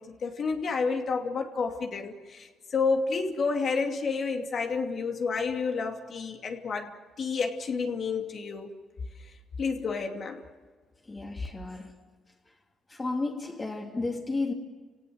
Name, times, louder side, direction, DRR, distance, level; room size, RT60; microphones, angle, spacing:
voice 1, 0.2-2.5 2.7-6.9 7.2-8.7 9.6-10.4, left 4 dB, 55° left, 2.6 m, -30 dB
voice 2, 11.1-12.0 12.9-14.5, left 3 dB, 25° left, 3.1 m, -32 dB
30.0 x 18.0 x 7.8 m
cardioid pair, 90°, 0 cm